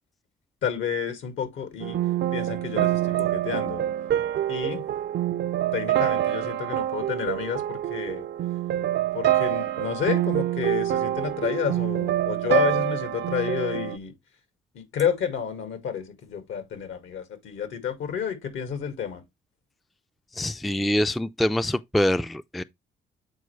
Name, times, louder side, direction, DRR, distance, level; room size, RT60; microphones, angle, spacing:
voice 1, 0.6-2.0 2.3-3.8 4.5-4.8 5.7-8.3 9.1-14.1 14.7-19.2, left 7 dB, 80° left, 2.1 m, -30 dB
sound 1, 1.8-14.0, right 12 dB, 60° right, 0.5 m, -26 dB
voice 2, 20.4-22.6, left 1 dB, ahead, 0.3 m, -25 dB
7.8 x 4.6 x 3.2 m
cardioid pair, 90°, 20 cm